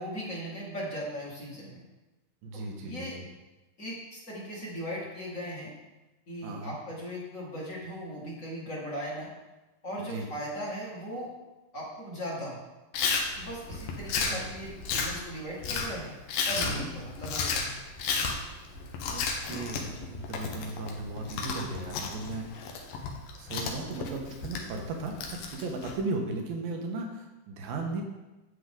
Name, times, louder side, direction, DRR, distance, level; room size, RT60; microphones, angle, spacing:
voice 1, 0.0-1.8 2.8-3.1 3.8-5.7 6.3-9.3 9.8-11.3 11.7-12.6 13.3-16.1 16.5-17.8 18.1-18.3, equal, 25° left, -5 dB, 2.0 m, -38 dB
voice 2, 2.4-3.3 6.4-6.8 10.0-10.3 14.2-14.5 16.6-16.9 19.1-22.5 23.4-28.0, right 3 dB, 85° right, 2 dB, 3.0 m, -36 dB
Chewing mastication, 12.9-26.0, left 4 dB, 75° left, 2.5 m, -33 dB
10.0 x 7.9 x 3.8 m, 1.1 s
omnidirectional pair, 4.2 m